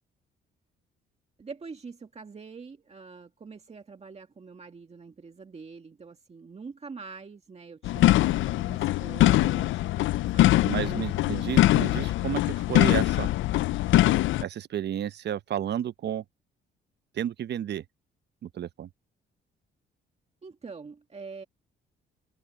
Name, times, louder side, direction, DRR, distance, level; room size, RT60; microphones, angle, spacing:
voice 1, 1.4-11.5 20.4-21.4, right 4 dB, 30° right, 1.9 m, -45 dB
sound 1, 7.8-14.4, left 15 dB, 75° left, 0.5 m, -23 dB
voice 2, 10.6-13.3 14.4-16.2 17.1-17.8 18.4-18.9, right 10 dB, 60° right, 0.8 m, -32 dB
cardioid pair, 90°, 20 cm